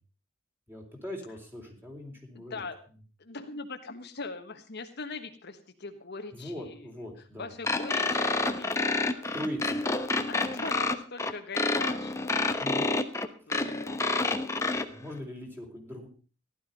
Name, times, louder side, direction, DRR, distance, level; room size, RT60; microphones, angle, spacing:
voice 1, 0.7-2.6 6.3-7.5 9.3-9.8 12.6-12.9 13.4-13.5 14.8-16.1, equal, 10° right, 1 dB, 4.0 m, -40 dB
voice 2, 2.3-2.8 3.2-6.8 7.4-9.3 10.3-12.8 13.5-14.5, left 4 dB, 55° left, 6 dB, 1.3 m, -41 dB
sound 1, 7.6-14.8, left 2 dB, 15° left, 1.1 m, -28 dB
15.5 x 12.0 x 5.3 m, 0.37 s
head